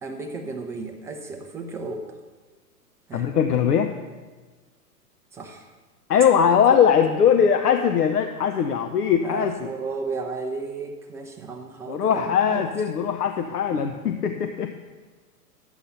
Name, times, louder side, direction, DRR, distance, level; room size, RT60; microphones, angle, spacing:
voice 1, 0.0-2.2 3.1-3.3 5.3-5.7 6.7-6.8 9.2-12.7 13.7-13.9, right 3 dB, 5° right, 4 dB, 0.3 m, -34 dB
voice 2, 3.1-3.9 6.1-9.5 11.9-14.9, left 7 dB, 75° left, 6 dB, 0.9 m, -20 dB
11.0 x 8.2 x 5.7 m, 1.3 s
hypercardioid pair, 105°, 47 cm